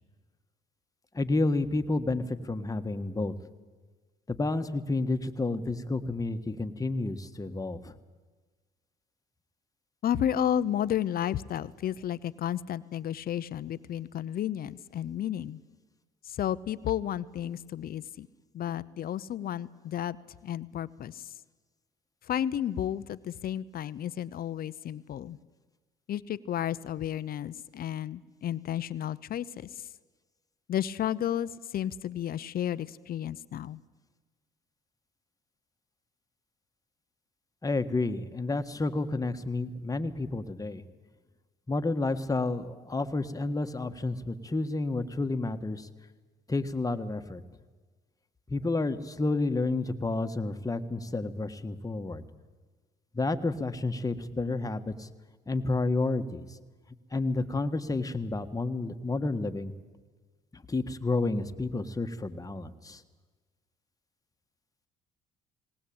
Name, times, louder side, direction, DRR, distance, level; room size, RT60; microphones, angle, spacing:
voice 1, 1.1-3.3 4.3-8.0 37.6-40.8 41.7-45.9 46.5-47.4 48.5-52.2 53.1-55.1 55.5-56.5 57.1-59.7 60.5-63.0, left 2 dB, 20° left, 8 dB, 1.6 m, -30 dB
voice 2, 10.0-15.6 16.3-18.3 18.5-20.2 20.4-21.3 22.3-25.4 26.1-29.5 30.7-33.8, left 10 dB, 60° left, 17 dB, 0.8 m, -32 dB
19.5 x 19.0 x 8.8 m, 1.3 s
supercardioid pair, 75°, 18 cm